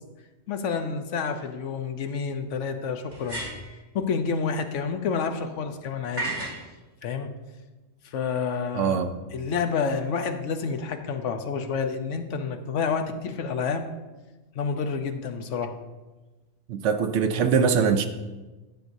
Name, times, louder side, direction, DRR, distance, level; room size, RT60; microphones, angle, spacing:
voice 1, 0.5-3.4 3.9-6.3 7.0-7.3 8.0-9.0 9.3-13.9 14.5-15.8, left 5 dB, 80° left, 8 dB, 1.0 m, -29 dB
sound 1, 1.2-1.3 3.1-3.8 6.2-6.6, right 2 dB, 35° right, 2.8 m, -32 dB
voice 2, 8.7-9.1 16.7-18.1, right 6 dB, 75° right, 8 dB, 1.0 m, -22 dB
10.5 x 7.8 x 2.7 m, 1.2 s
omnidirectional pair, 1.3 m